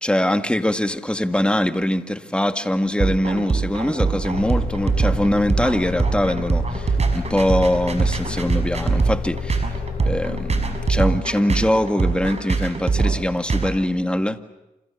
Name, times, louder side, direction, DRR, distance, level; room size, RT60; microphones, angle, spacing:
voice 1, 0.0-9.6 10.0-14.4, left 1 dB, 5° left, 2.0 m, -22 dB
sound 1, 3.0-13.7, right 4 dB, 45° right, 5.9 m, -22 dB
sound 2, 4.3-11.0, left 6 dB, 80° left, 3.6 m, -30 dB
28.5 x 27.0 x 7.3 m
cardioid pair, 55°, 16 cm